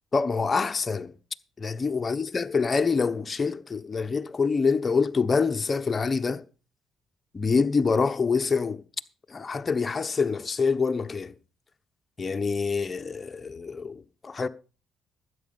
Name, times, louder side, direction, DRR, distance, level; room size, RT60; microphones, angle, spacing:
voice 1, 0.1-1.1 1.6-6.4 7.3-8.8 9.3-11.3 12.2-14.5, left 5 dB, 30° left, 0.9 m, -26 dB
13.0 x 8.7 x 5.5 m
cardioid pair, 90°, 0 cm